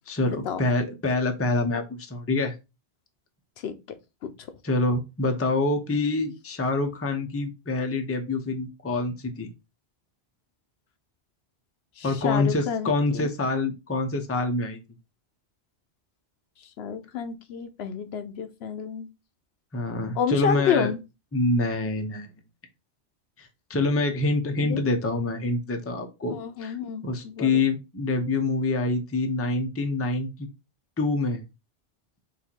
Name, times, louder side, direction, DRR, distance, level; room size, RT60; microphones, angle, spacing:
voice 1, 0.1-2.5 4.6-9.5 12.0-14.8 19.7-20.9 21.3-22.3 23.4-26.8 27.0-30.5 31.0-31.4, left 2 dB, 15° left, 0.5 m, -26 dB
voice 2, 12.0-13.3 16.8-19.1 20.2-21.0 24.6-24.8 26.3-27.5, left 7 dB, 70° left, 0.8 m, -29 dB
4.1 x 2.6 x 4.3 m
omnidirectional pair, 1.1 m